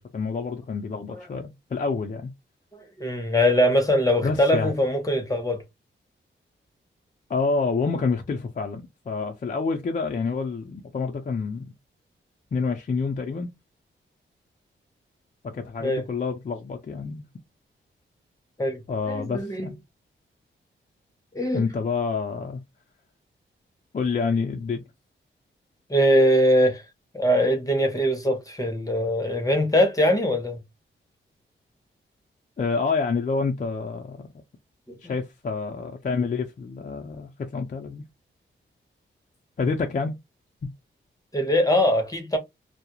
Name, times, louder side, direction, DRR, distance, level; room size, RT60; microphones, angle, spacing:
voice 1, 0.0-2.3 4.2-4.7 7.3-11.7 12.5-13.5 15.4-17.3 18.9-19.8 21.5-22.6 23.9-24.8 32.6-34.3 35.0-38.0 39.6-40.1, left 4 dB, 40° left, 0.5 m, -28 dB
voice 2, 2.7-5.6 15.8-16.0 18.6-19.7 21.3-21.7 25.9-26.8 27.1-30.6 34.9-35.1 41.3-42.4, equal, 15° left, 0.9 m, -22 dB
2.3 x 2.0 x 2.9 m
wide cardioid pair, 90°, 21 cm